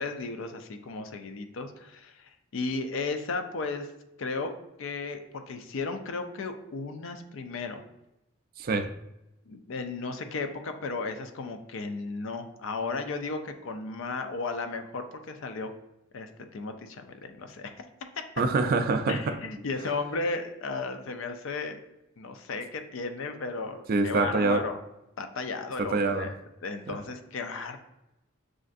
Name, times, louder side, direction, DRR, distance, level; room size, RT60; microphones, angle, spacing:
voice 1, 0.0-3.9 4.2-4.5 4.8-7.8 9.5-15.7 16.1-17.8 19.1-21.8 22.2-24.8 25.2-26.4 26.6-27.8, left 3 dB, 65° left, 7 dB, 0.4 m, -34 dB
voice 2, 8.6-8.9 18.4-19.4 23.9-24.6 25.8-26.3 26.9-27.0, right 3 dB, 45° right, 8 dB, 0.3 m, -25 dB
6.2 x 2.5 x 2.5 m, 0.90 s
head